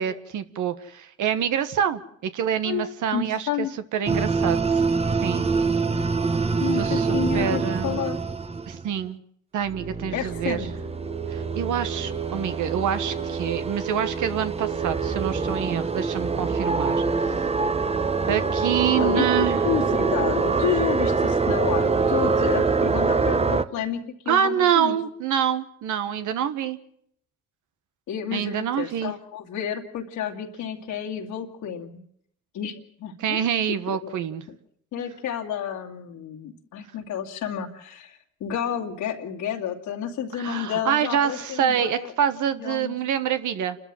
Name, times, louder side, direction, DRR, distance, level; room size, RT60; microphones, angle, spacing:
voice 1, 0.0-3.7 3.9-4.8 5.2-5.5 6.7-8.1 8.7-9.2 9.5-10.6 11.3-17.5 18.3-19.6 24.3-26.8 28.3-29.1 33.2-34.4 40.4-43.8, right 9 dB, 80° right, 10 dB, 1.4 m, -26 dB
voice 2, 2.6-3.7 6.6-8.2 10.1-10.7 19.0-25.0 28.1-32.0 32.5-33.5 33.9-34.1 34.9-42.1 42.6-42.9, left 9 dB, 85° left, 0 dB, 2.6 m, -30 dB
sound 1, 4.1-8.8 9.6-23.6, right 4 dB, 20° right, 1.0 m, -24 dB
28.5 x 13.0 x 7.6 m, 0.69 s
cardioid pair, 90°, 30 cm